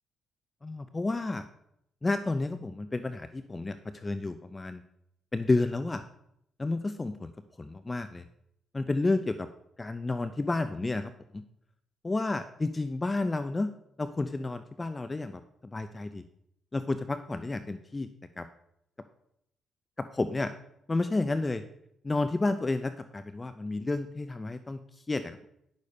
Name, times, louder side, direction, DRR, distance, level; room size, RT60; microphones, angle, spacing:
voice 1, 0.6-1.5 2.0-4.8 5.3-6.0 6.6-7.3 7.6-8.3 8.7-9.5 9.8-11.4 12.0-13.7 14.0-16.2 16.7-18.1 18.4-18.5 20.0-20.5 20.9-21.6 22.0-25.5, left 2 dB, 20° left, 10 dB, 0.6 m, -31 dB
10.5 x 6.6 x 5.3 m, 0.75 s
cardioid pair, 90°, 0 cm